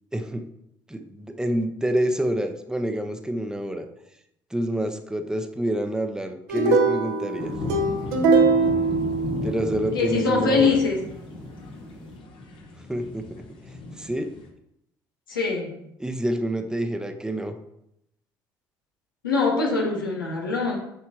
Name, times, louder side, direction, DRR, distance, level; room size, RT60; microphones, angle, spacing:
voice 1, 0.1-0.5 0.9-3.9 4.5-7.5 9.4-10.8 12.9-14.3 16.0-17.5, right 1 dB, 5° right, 6 dB, 0.9 m, -28 dB
sound 1, 6.5-9.9, right 3 dB, 70° right, 1.0 m, -22 dB
sound 2, 7.4-14.5, left 1 dB, 50° left, 1.5 m, -35 dB
voice 2, 9.9-11.0 15.3-15.8 19.2-20.8, left 4 dB, 85° left, -1 dB, 1.3 m, -23 dB
7.7 x 5.7 x 3.0 m, 0.79 s
figure-of-eight pair, 55°, 11 cm